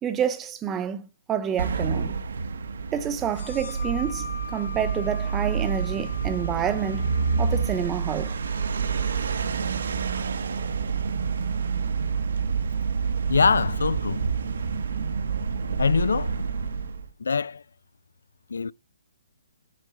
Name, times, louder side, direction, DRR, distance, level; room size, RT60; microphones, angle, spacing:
voice 1, 0.0-2.2 2.9-7.1 7.4-8.4, right 8 dB, 10° right, 0.4 m, -28 dB
sound 1, 1.6-17.1, right 5 dB, 65° right, 0.8 m, -28 dB
sound 2, 3.2-10.5, left 3 dB, 70° left, 1.6 m, -42 dB
voice 2, 13.3-14.2 15.8-16.4 17.2-17.6 18.5-18.7, left 5 dB, 85° left, 0.3 m, -23 dB
6.1 x 5.8 x 3.7 m
hypercardioid pair, 170°, 0 cm